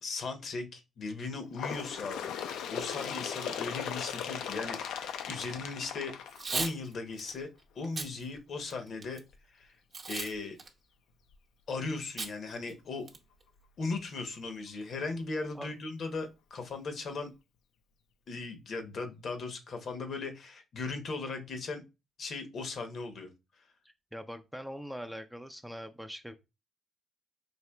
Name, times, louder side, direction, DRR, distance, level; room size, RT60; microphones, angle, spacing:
voice 1, 0.0-2.3 2.7-6.2 6.5-7.5 7.7-9.2 9.5-9.7 10.1-10.6 11.7-13.1 13.8-17.3 18.3-21.8 22.2-23.3, left 3 dB, 55° left, 6 dB, 0.8 m, -38 dB
Bird, 1.5-7.0 7.9-8.0 8.4-8.5 9.3-9.4 10.3-10.4 11.3-11.4, left 8 dB, 85° left, 0.4 m, -38 dB
Packing tape duct tape / Tearing, 6.3-6.7 7.2-7.3 7.8-8.1 8.6-9.2 9.9-10.3 10.6-10.7 12.2-12.3 12.7-12.8 13.1-13.4, right 4 dB, 45° right, 0.8 m, -35 dB
voice 2, 23.8-26.4, equal, ahead, 7 dB, 0.3 m, -42 dB
4.2 x 2.8 x 2.2 m, 0.26 s
cardioid pair, 90°, 0 cm